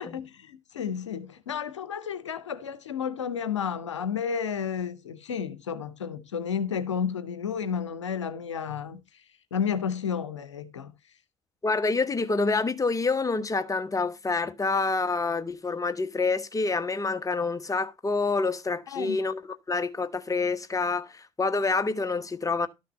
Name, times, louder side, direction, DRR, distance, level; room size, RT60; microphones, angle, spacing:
voice 1, 0.0-9.0 9.5-10.9 18.9-19.2, left 7 dB, 85° left, 0.8 m, -32 dB
voice 2, 11.6-22.7, left 3 dB, 20° left, 1.2 m, -27 dB
12.5 x 5.9 x 4.2 m
figure-of-eight pair, 50°, 15 cm